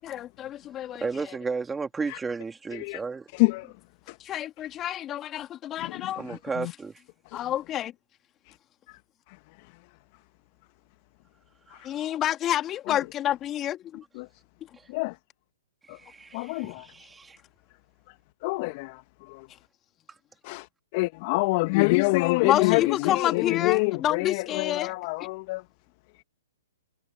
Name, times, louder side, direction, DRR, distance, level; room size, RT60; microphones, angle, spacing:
voice 1, 0.0-1.2 4.2-6.2 7.3-7.9 11.8-14.0 22.4-24.9, left 12 dB, 25° left, 2.6 m, -29 dB
voice 2, 1.0-3.3 6.2-7.0 11.7-11.9 14.8-14.9 15.8-17.4 20.1-20.2, right 4 dB, 10° right, 3.4 m, -34 dB
voice 3, 3.3-3.7 4.1-4.2 5.8-5.9 6.3-6.7 7.3-7.4 11.7-11.9 12.9-13.0 14.2-14.3 14.9-15.2 15.9-16.0 16.3-16.9 18.4-19.0 19.3-19.5 20.4-20.7 20.9-25.6, left 26 dB, 40° left, 1.9 m, -26 dB
hypercardioid pair, 120°, 0 cm